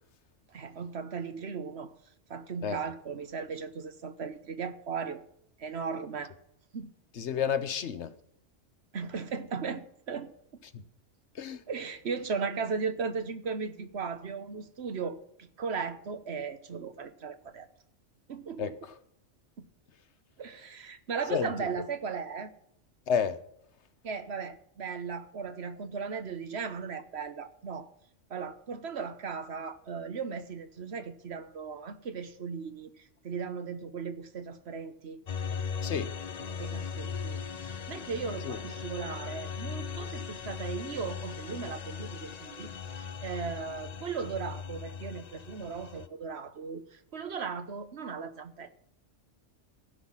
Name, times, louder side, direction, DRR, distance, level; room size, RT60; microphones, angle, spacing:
voice 1, 0.5-1.9 2.3-5.2 5.6-6.3 6.7-6.9 8.9-10.3 11.7-17.7 18.3-18.8 19.6-19.7 20.4-22.5 24.0-27.9 28.3-35.2 36.5-48.7, right 5 dB, 60° right, 1.2 m, -37 dB
voice 2, 7.1-8.1 10.7-10.8 11.3-11.6 18.6-18.9 21.3-21.7 23.1-23.4 35.8-36.1 38.4-38.6, left 7 dB, 65° left, 1.2 m, -31 dB
sound 1, 35.3-46.1, left 6 dB, 45° left, 0.5 m, -38 dB
16.0 x 5.9 x 7.3 m
omnidirectional pair, 1.3 m